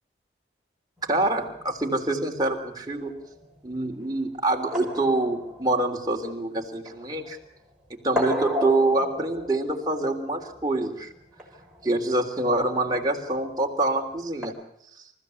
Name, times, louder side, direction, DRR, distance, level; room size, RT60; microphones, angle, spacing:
sound 1, 1.0-14.5, left 1 dB, 5° right, 6.0 m, -36 dB
voice 1, 1.1-3.2 3.6-7.4 8.0-11.1 11.8-14.5, right 2 dB, 20° right, 0 dB, 3.3 m, -25 dB
28.5 x 15.0 x 8.4 m, 0.75 s
head